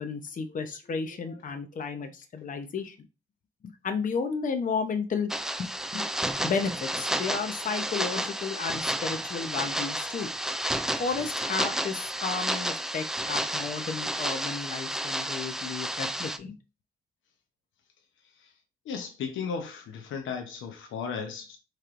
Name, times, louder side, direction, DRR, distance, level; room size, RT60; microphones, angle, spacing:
voice 1, 0.0-3.0 3.8-5.3 5.6-6.1 6.4-10.3 11.0-16.6, left 5 dB, 40° left, 0.8 m, -33 dB
sound 1, 5.3-16.4, right 1 dB, 5° right, 0.3 m, -31 dB
voice 2, 18.8-21.6, left 6 dB, 75° left, 0.9 m, -35 dB
4.3 x 3.2 x 2.6 m
cardioid pair, 90°, 20 cm